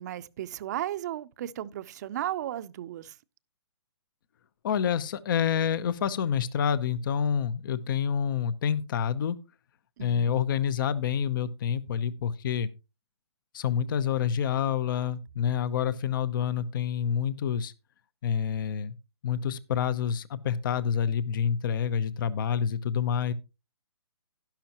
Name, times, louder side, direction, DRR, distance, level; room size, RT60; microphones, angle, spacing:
voice 1, 0.0-3.2 10.0-10.3, right 12 dB, 40° right, 0.6 m, -35 dB
voice 2, 4.6-9.4 10.0-12.7 13.5-17.7 18.2-18.9 19.2-23.3, left 8 dB, 50° left, 0.8 m, -28 dB
11.5 x 11.5 x 2.9 m
hypercardioid pair, 155°, 14 cm